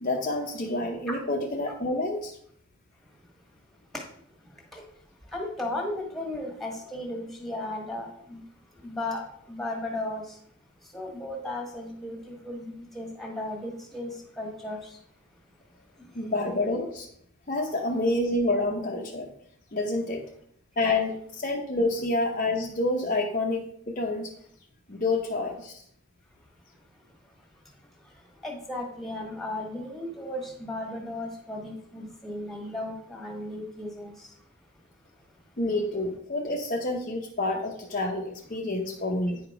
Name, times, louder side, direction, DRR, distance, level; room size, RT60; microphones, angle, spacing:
voice 1, 0.0-2.4 16.1-17.1 17.5-19.3 19.7-20.2 20.8-24.3 24.9-25.8 35.6-39.4, left 2 dB, 35° left, 1 dB, 0.7 m, -28 dB
voice 2, 5.3-8.4 8.8-10.4 10.9-15.0 28.4-34.3, left 1 dB, ahead, 1 dB, 1.5 m, -35 dB
9.3 x 5.0 x 4.8 m, 0.68 s
head